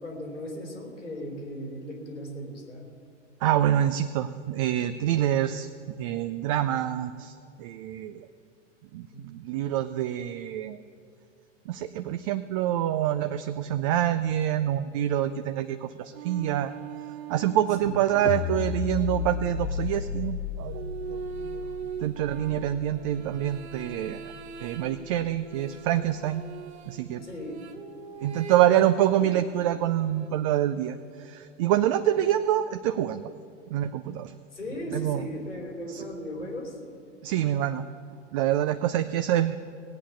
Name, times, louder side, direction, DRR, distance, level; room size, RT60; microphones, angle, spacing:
voice 1, 0.0-2.9 9.1-9.3 17.8-18.0 27.2-27.6 28.2-28.3 34.5-36.8, equal, 85° left, 1 dB, 3.4 m, -37 dB
voice 2, 3.4-5.7 6.0-8.3 8.9-10.8 11.7-16.7 17.3-21.6 22.0-24.3 24.6-26.4 26.9-27.2 28.2-33.3 33.7-34.3 34.9-35.2 35.9-36.0 37.2-37.8 38.3-39.6, right 11 dB, 30° right, 10 dB, 0.4 m, -26 dB
sound 1, 16.1-19.6 20.7-30.3, right 6 dB, 60° right, 1.1 m, -41 dB
sound 2, 18.2-24.5, left 8 dB, 35° left, 0.6 m, -34 dB
18.0 x 8.6 x 7.0 m, 2.3 s
figure-of-eight pair, 95°, 36 cm